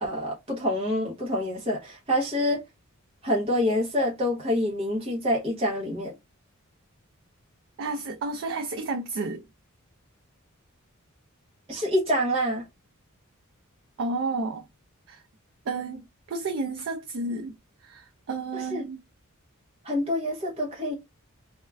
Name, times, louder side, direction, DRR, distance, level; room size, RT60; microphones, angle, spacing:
voice 1, 0.0-2.6 3.2-6.1 11.7-12.6 18.5-18.9 19.8-20.9, equal, 25° right, 0.7 m, -26 dB
voice 2, 7.8-9.4 14.0-14.6 15.1-15.2 15.7-17.5 17.8-19.0, right 3 dB, 60° right, 0.4 m, -31 dB
2.3 x 2.1 x 3.2 m
head